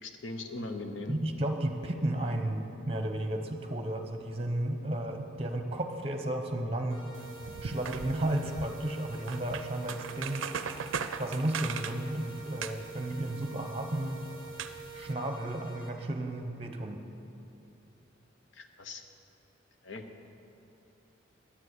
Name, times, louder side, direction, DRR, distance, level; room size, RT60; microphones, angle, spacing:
voice 1, 0.0-1.1 18.5-19.0 19.8-20.0, left 2 dB, 75° left, 6 dB, 0.9 m, -39 dB
voice 2, 1.1-7.1 7.5-10.4 11.2-14.2 14.9-17.0, right 1 dB, 30° right, 5 dB, 0.8 m, -33 dB
sound 1, 6.9-15.9, right 4 dB, 20° left, 2.1 m, -46 dB
sound 2, 7.1-15.1, right 6 dB, 85° right, 0.5 m, -40 dB
10.0 x 7.5 x 8.1 m, 2.9 s
head